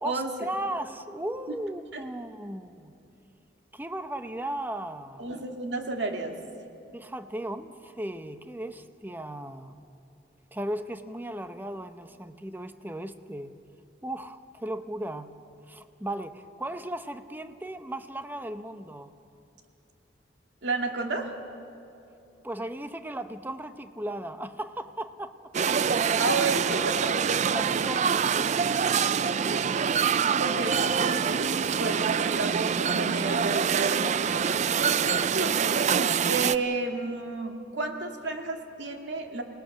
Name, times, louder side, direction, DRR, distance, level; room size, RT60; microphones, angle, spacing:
voice 1, 0.0-2.9 3.7-5.2 6.9-9.7 10.5-13.5 14.0-15.3 15.7-19.1 22.4-25.3 27.5-28.5, right 1 dB, 10° right, 9 dB, 0.8 m, -36 dB
voice 2, 5.2-6.4 20.6-21.3 26.2-27.1 30.4-34.4 35.0-35.5 35.9-39.4, right 3 dB, 85° right, 3 dB, 2.1 m, -32 dB
sound 1, 25.5-36.6, right 7 dB, 40° right, 0.4 m, -25 dB
27.5 x 18.5 x 6.4 m, 2.7 s
head